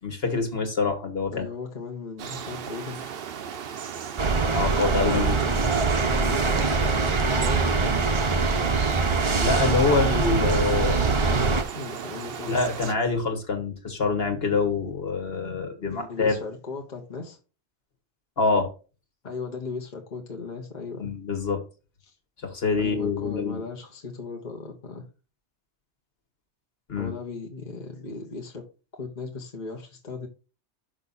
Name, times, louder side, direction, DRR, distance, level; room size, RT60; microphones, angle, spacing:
voice 1, 0.0-1.5 4.5-5.4 9.3-11.2 12.5-16.4 18.4-18.7 21.0-21.6 22.4-23.6 26.9-27.1, left 4 dB, 60° left, 1.8 m, -25 dB
voice 2, 1.3-3.1 5.0-8.0 11.2-12.5 15.9-17.4 19.2-21.1 22.0-22.2 22.8-25.0 26.9-28.6 28.9-30.3, left 4 dB, 45° left, 1.2 m, -37 dB
sound 1, 2.2-12.9, right 7 dB, 60° right, 0.9 m, -36 dB
sound 2, 4.2-11.6, right 4 dB, 30° right, 0.7 m, -23 dB
6.1 x 5.7 x 4.0 m
omnidirectional pair, 1.1 m